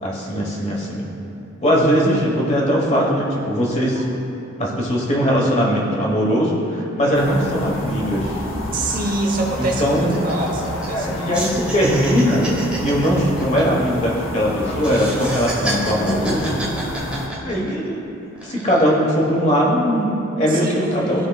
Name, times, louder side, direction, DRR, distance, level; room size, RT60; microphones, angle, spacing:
voice 1, 0.0-1.1 1.6-4.0 4.6-8.4 9.6-10.2 10.9-12.5 12.8-16.6 17.4-18.0 18.4-21.3, equal, 35° left, -3 dB, 1.2 m, -20 dB
sound 1, 7.1-17.3, left 1 dB, 75° left, 0.7 m, -30 dB
sound 2, 8.5-8.6 8.9-9.1 9.4-11.0 11.3-14.4 14.8-17.9 18.4-18.9, right 1 dB, 5° right, 1.0 m, -30 dB
voice 2, 8.7-11.7 18.6-18.7 20.4-21.3, right 2 dB, 45° right, 0 dB, 0.9 m, -26 dB
13.0 x 4.6 x 2.3 m, 2.8 s
head